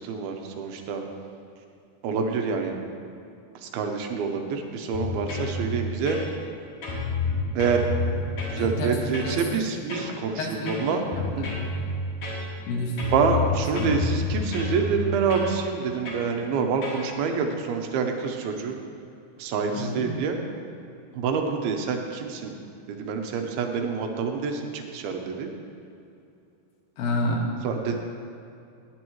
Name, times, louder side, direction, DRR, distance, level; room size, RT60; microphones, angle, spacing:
voice 1, 0.1-1.0 2.0-2.8 3.7-6.2 7.6-7.8 8.5-11.0 11.3-11.5 13.1-18.8 19.4-20.4 21.2-22.5 22.9-25.5 27.6-28.0, right 5 dB, 80° right, 4 dB, 2.7 m, -27 dB
sound 1, 4.9-5.5 6.1-6.5 6.8-8.6 9.1-9.4 9.9-10.2 10.7-11.7 12.2-12.7 13.0-14.8 15.3-15.5 16.1-16.3 16.8-17.1, left 3 dB, 55° left, 2.9 m, -30 dB
voice 2, 8.6-9.0 9.2-9.5 9.7-9.8 10.4-11.5 12.7-13.1 13.7-14.0 19.7-20.1 27.0-27.5, left 1 dB, 85° left, 0 dB, 3.5 m, -30 dB
17.5 x 9.7 x 3.1 m, 2.6 s
omnidirectional pair, 4.5 m